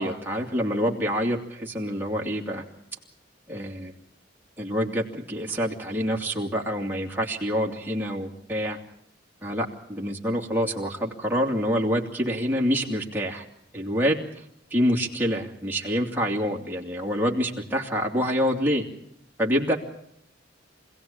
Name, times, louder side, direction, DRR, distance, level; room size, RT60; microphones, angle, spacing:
voice 1, 0.0-2.6 3.5-3.9 4.6-8.8 9.4-13.4 13.7-14.2 14.7-18.8 19.4-19.8, equal, 10° right, -1 dB, 2.7 m, -26 dB
26.0 x 17.0 x 8.7 m, 0.75 s
head